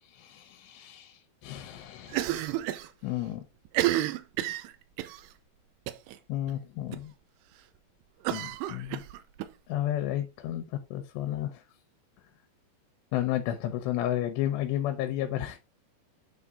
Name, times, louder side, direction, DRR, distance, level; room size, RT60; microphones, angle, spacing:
voice 1, 0.0-2.6 3.0-3.4 6.3-7.1 8.3-9.0 9.7-10.7 10.9-11.6 13.1-15.6, left 12 dB, 85° left, 2.9 m, -32 dB
Cough, 2.1-2.9 3.2-3.3 3.7-5.2 5.9-6.2 6.5-6.6 6.9-7.0 8.2-9.5, right 14 dB, 85° right, 2.6 m, -30 dB
9.1 x 4.1 x 3.5 m
omnidirectional pair, 4.9 m